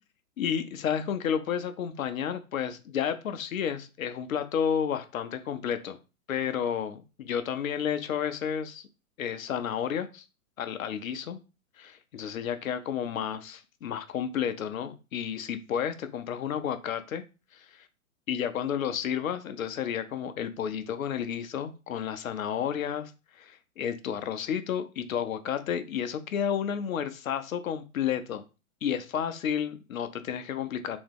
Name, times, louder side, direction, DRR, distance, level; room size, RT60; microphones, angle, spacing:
voice 1, 0.4-6.0 6.3-8.8 9.2-10.2 10.6-11.4 11.8-17.2 17.5-17.7 18.3-23.1 23.4-28.4 28.8-31.0, left 8 dB, 70° left, 0.7 m, -31 dB
3.5 x 3.1 x 3.4 m
hypercardioid pair, 120°, 43 cm